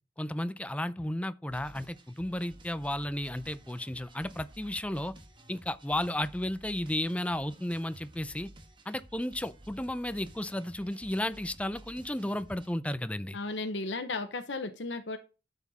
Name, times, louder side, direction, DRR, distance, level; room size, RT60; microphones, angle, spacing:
voice 1, 0.2-5.1 5.5-8.5 8.9-13.4, left 1 dB, 5° left, 0.5 m, -33 dB
sound 1, 1.5-12.7, right 1 dB, 25° right, 1.6 m, -53 dB
voice 2, 13.3-15.2, left 3 dB, 80° left, 1.1 m, -34 dB
12.0 x 7.2 x 4.2 m
head